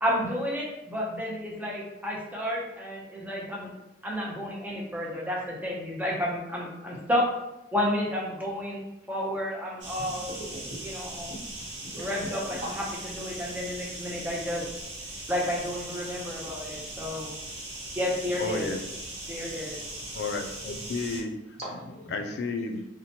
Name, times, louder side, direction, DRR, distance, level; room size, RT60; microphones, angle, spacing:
voice 1, 0.0-3.7 4.0-7.3 7.7-8.8 9.1-10.4 10.8-11.3 12.0-12.8 13.1-14.6 15.3-17.3 18.0-18.7 19.3-19.8, left 1 dB, 10° right, -4 dB, 0.5 m, -31 dB
sound 1, 9.8-21.2, right 1 dB, 85° right, 1.0 m, -39 dB
voice 2, 10.0-10.7 11.3-12.1 12.5-12.7 21.7-22.1, right 1 dB, 35° right, -7 dB, 1.1 m, -42 dB
voice 3, 18.4-18.8 20.1-21.6 22.1-22.8, left 3 dB, 60° left, 4 dB, 0.3 m, -32 dB
2.8 x 2.1 x 2.7 m, 0.92 s
head